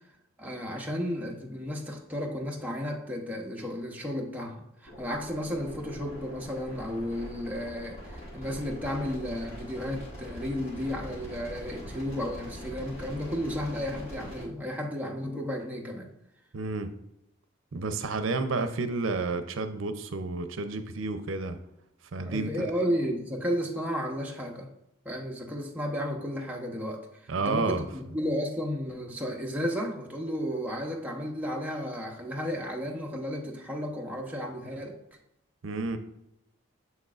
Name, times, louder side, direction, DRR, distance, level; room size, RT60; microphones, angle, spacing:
voice 1, 0.4-16.1 22.2-24.7 25.0-35.0, equal, 10° right, -1 dB, 0.8 m, -33 dB
sound 1, 4.9-14.4, equal, 30° left, 1.9 m, -43 dB
voice 2, 16.5-16.9 17.7-21.6 22.1-22.7 27.3-27.8 35.6-36.0, right 3 dB, 80° right, 9 dB, 0.6 m, -30 dB
7.2 x 6.3 x 2.5 m, 0.85 s
head